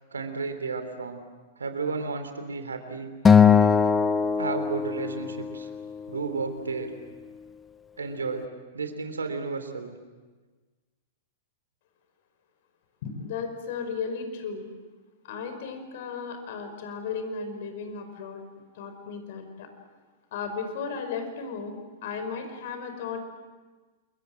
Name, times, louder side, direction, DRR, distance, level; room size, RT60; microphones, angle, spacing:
voice 1, 0.1-1.2 1.6-3.1 4.4-5.7 6.1-6.9 8.0-8.4 8.7-9.9, right 4 dB, 85° right, 8 dB, 3.2 m, -32 dB
Acoustic guitar, 3.3-5.6, left 6 dB, 20° left, 1.3 m, -20 dB
voice 2, 13.0-14.7 15.2-18.4 18.7-19.7 20.3-23.2, left 5 dB, 60° left, 7 dB, 5.2 m, -35 dB
28.0 x 23.0 x 7.8 m, 1.3 s
figure-of-eight pair, 105°, 0 cm